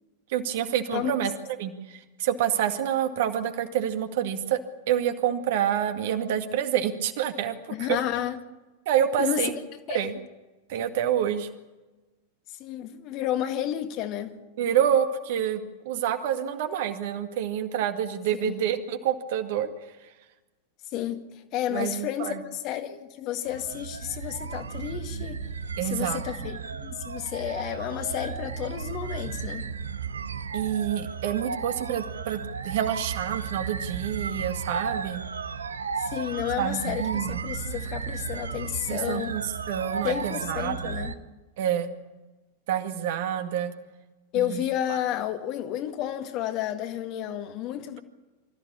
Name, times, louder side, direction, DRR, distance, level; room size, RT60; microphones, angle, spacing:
voice 1, 0.3-1.3 1.6-4.6 4.9-7.5 7.8-8.0 8.9-9.5 9.9-10.2 10.7-11.5 14.6-19.7 21.7-22.4 25.8-26.5 30.5-35.2 36.6-37.4 38.9-40.9 41.6-41.9 42.7-43.7 44.3-44.6 44.9-45.0, right 10 dB, 55° right, 2.1 m, -27 dB
voice 2, 7.7-8.4 9.2-9.4 9.9-10.1 12.6-14.4 18.4-18.6 20.9-21.2 21.5-25.4 25.8-29.7 36.0-39.4 40.0-41.2 44.3-48.0, left 11 dB, 40° left, 1.9 m, -31 dB
sound 1, 23.4-41.2, right 5 dB, 70° right, 1.0 m, -34 dB
25.0 x 15.0 x 8.6 m
figure-of-eight pair, 90°, 0 cm